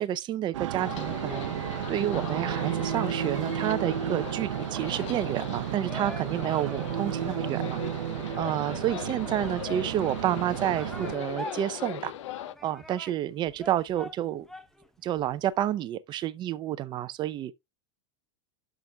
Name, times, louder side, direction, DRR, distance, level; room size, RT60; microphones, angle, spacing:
voice 1, 0.0-7.8 8.4-14.4 15.0-17.5, right 12 dB, 30° right, 0.6 m, -30 dB
sound 1, 0.5-11.1, right 11 dB, 85° right, 0.6 m, -33 dB
sound 2, 0.8-12.5, left 12 dB, 80° left, 0.7 m, -39 dB
sound 3, 1.2-15.6, equal, 5° left, 0.8 m, -48 dB
12.0 x 6.0 x 2.3 m
supercardioid pair, 135°, 16 cm